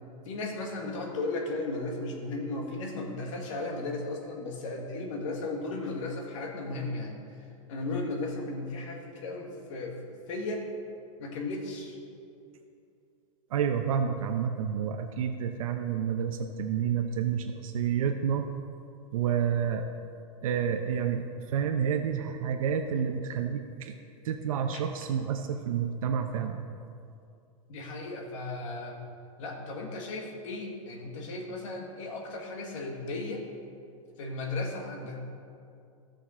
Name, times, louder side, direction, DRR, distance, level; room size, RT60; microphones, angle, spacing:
voice 1, 0.3-7.2 7.7-10.7 11.2-12.0 24.7-24.8 27.7-29.0 29.4-33.4 34.2-35.2, left 2 dB, 65° left, 1 dB, 1.9 m, -35 dB
voice 2, 13.5-18.5 19.1-19.9 20.4-23.9 24.2-26.6, right 7 dB, 80° right, 5 dB, 0.8 m, -29 dB
15.5 x 6.5 x 4.3 m, 2.5 s
supercardioid pair, 150°, 18 cm